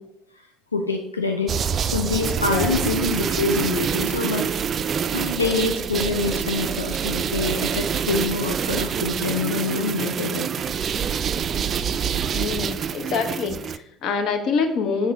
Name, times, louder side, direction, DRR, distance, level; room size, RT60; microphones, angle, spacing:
voice 1, 0.7-1.5 1.9-4.8 5.1-10.5, left 4 dB, 85° left, 3 dB, 0.4 m, -26 dB
sound 1, 1.5-13.8, right 7 dB, 40° right, 0.3 m, -26 dB
voice 2, 2.5-2.9 12.3-15.1, left 5 dB, 50° left, 7 dB, 0.8 m, -26 dB
6.9 x 3.8 x 4.7 m, 0.76 s
figure-of-eight pair, 55°, 0 cm